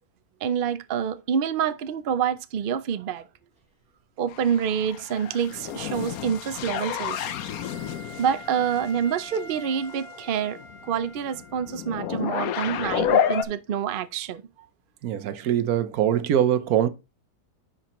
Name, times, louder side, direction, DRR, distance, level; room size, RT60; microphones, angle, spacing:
voice 1, 0.4-3.3 4.2-7.3 8.2-10.6 10.8-14.4, right 8 dB, 55° right, 0.6 m, -27 dB
sound 1, 4.3-13.4, left 9 dB, 75° left, 1.1 m, -30 dB
Wind instrument woodwind instrument, 4.5-12.3, right 1 dB, 5° right, 4.0 m, -47 dB
voice 2, 15.0-16.9, right 10 dB, 75° right, 1.2 m, -23 dB
10.0 x 5.1 x 3.0 m
omnidirectional pair, 1.6 m